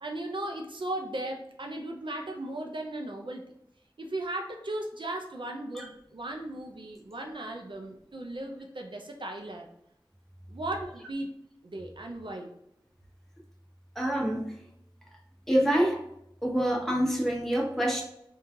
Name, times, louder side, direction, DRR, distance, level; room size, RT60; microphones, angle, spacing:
voice 1, 0.0-3.5 4.0-9.7 10.5-11.3 11.6-12.6, right 1 dB, 65° right, 2 dB, 0.4 m, -36 dB
voice 2, 14.0-14.5 15.5-16.0 16.4-18.0, equal, 5° left, -2 dB, 0.9 m, -26 dB
3.7 x 2.3 x 2.7 m, 0.79 s
wide cardioid pair, 40°, 9 cm